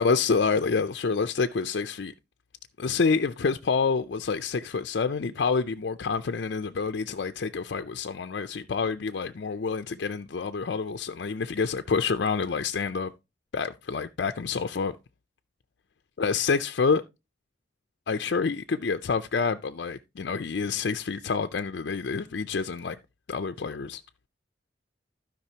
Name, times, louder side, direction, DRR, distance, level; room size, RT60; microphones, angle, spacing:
voice 1, 0.0-2.1 2.8-13.1 13.5-14.9 16.2-17.0 18.1-23.0 23.3-24.0, left 5 dB, 60° left, 0.5 m, -27 dB
15.5 x 5.2 x 2.8 m
head